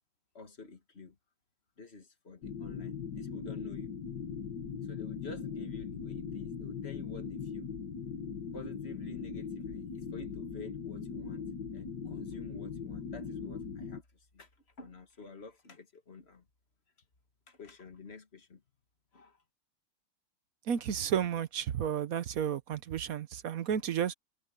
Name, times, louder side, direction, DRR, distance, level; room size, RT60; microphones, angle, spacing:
voice 1, 0.3-1.2 1.8-3.9 4.8-7.7 8.5-14.5 14.8-16.5 17.5-18.6 19.1-19.4, left 3 dB, 30° left, 2.0 m, -49 dB
sound 1, 2.4-14.0, left 6 dB, 55° left, 1.9 m, -40 dB
voice 2, 20.7-24.1, right 8 dB, 55° right, 1.0 m, -32 dB
omnidirectional pair, 2.3 m